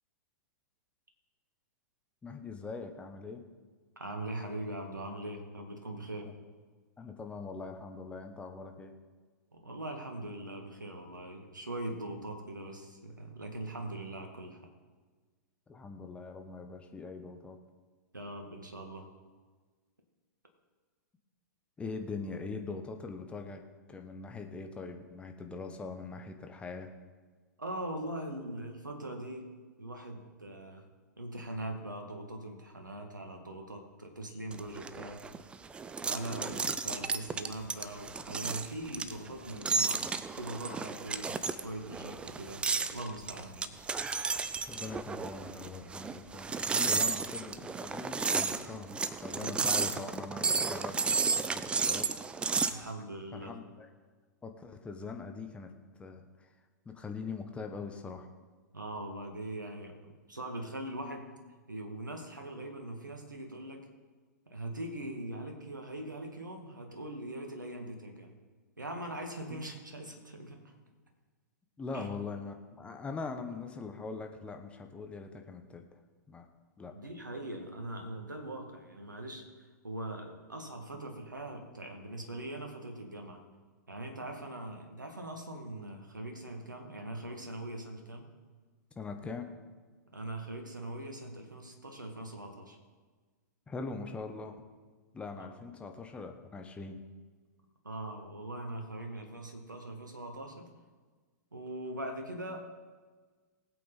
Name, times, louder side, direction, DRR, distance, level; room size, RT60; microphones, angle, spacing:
voice 1, 2.2-3.4 6.2-6.3 7.0-8.9 15.7-17.6 21.8-23.6 23.9-26.9 44.7-51.0 51.3-52.1 53.3-53.9 54.4-55.7 56.0-56.2 56.8-58.3 69.5-69.6 71.8-75.8 76.3-76.5 76.8-76.9 89.0-89.5 93.7-94.6 95.1-97.0, left 4 dB, 10° left, 5 dB, 1.2 m, -42 dB
voice 2, 4.0-6.3 9.5-14.6 18.1-19.1 27.6-29.5 29.8-30.8 31.2-35.2 36.0-40.1 40.4-41.4 41.6-43.7 49.4-49.7 52.7-53.6 58.7-59.9 60.3-61.3 61.7-63.9 64.5-68.3 68.8-70.7 71.9-72.1 76.9-79.4 79.8-83.4 83.9-88.3 90.1-92.8 95.2-95.5 97.8-100.6 101.5-102.7, right 1 dB, 80° right, 3 dB, 2.1 m, -41 dB
sound 1, 34.5-52.8, right 4 dB, 10° right, 0.5 m, -33 dB
19.5 x 8.3 x 4.1 m, 1.4 s
figure-of-eight pair, 105°, 10 cm